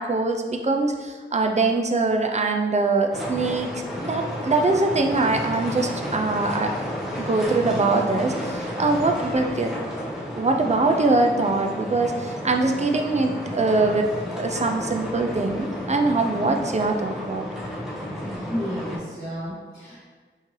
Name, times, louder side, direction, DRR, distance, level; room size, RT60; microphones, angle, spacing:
voice 1, 0.0-3.7 4.0-6.7 7.2-9.7 10.3-14.1 14.4-17.4, right 3 dB, 35° right, 3 dB, 0.4 m, -23 dB
sound 1, 3.1-19.0, equal, ahead, 0.7 m, -32 dB
voice 2, 18.2-20.0, equal, 55° left, -9 dB, 1.1 m, -32 dB
3.7 x 2.8 x 3.0 m, 1.4 s
wide cardioid pair, 60°, 21 cm